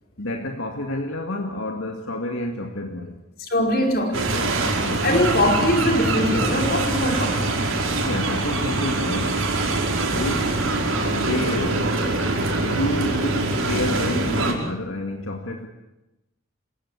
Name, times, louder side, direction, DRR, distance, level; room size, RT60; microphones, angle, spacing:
voice 1, 0.2-3.2 4.8-5.2 8.0-9.4 10.1-10.5 10.9-12.1 12.6-13.2 13.7-15.7, left 1 dB, 75° left, 3 dB, 2.2 m, -29 dB
voice 2, 3.5-7.5, left 1 dB, 45° left, 2 dB, 5.3 m, -22 dB
sound 1, 4.1-14.5, right 2 dB, 80° right, 5.4 m, -24 dB
28.0 x 17.0 x 8.5 m, 0.97 s
head